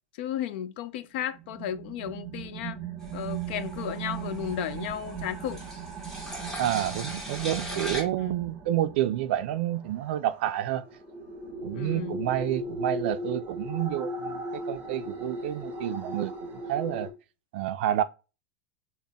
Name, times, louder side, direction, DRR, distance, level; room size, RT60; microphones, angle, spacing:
voice 1, 0.2-2.8 3.1-5.6 8.2-8.4 11.7-12.2, left 10 dB, 65° left, 0.4 m, -34 dB
sound 1, 1.3-17.1, right 3 dB, 25° right, 0.9 m, -38 dB
sound 2, 3.0-8.0, equal, 5° left, 1.0 m, -40 dB
voice 2, 6.6-10.8 11.6-17.1 17.5-18.0, right 12 dB, 70° right, 0.3 m, -29 dB
3.9 x 2.1 x 3.4 m
supercardioid pair, 135°, 6 cm